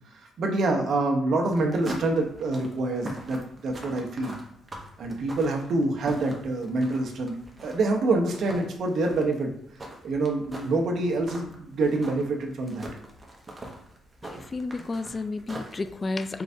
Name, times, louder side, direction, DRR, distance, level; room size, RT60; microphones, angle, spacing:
voice 1, 0.4-4.4 5.0-9.5 10.0-12.9, right 2 dB, 65° right, 2 dB, 0.8 m, -26 dB
sound 1, 1.4-15.9, right 1 dB, 25° right, 0.9 m, -42 dB
voice 2, 14.2-16.4, left 3 dB, 30° left, 11 dB, 0.3 m, -32 dB
4.6 x 3.2 x 2.7 m, 0.75 s
cardioid pair, 90°, 0 cm